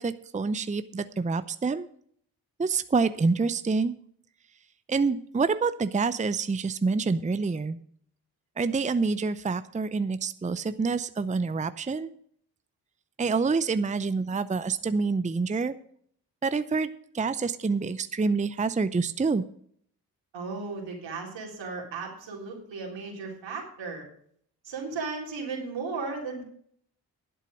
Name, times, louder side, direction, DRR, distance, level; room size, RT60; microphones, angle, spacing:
voice 1, 0.0-1.9 2.6-3.9 4.9-7.8 8.6-12.1 13.2-15.7 16.4-16.9 17.1-19.4, right 4 dB, 15° right, 13 dB, 0.6 m, -27 dB
voice 2, 20.3-24.1 24.6-26.4, right 4 dB, 80° right, -1 dB, 3.7 m, -35 dB
11.0 x 8.3 x 6.4 m, 0.62 s
supercardioid pair, 40°, 44 cm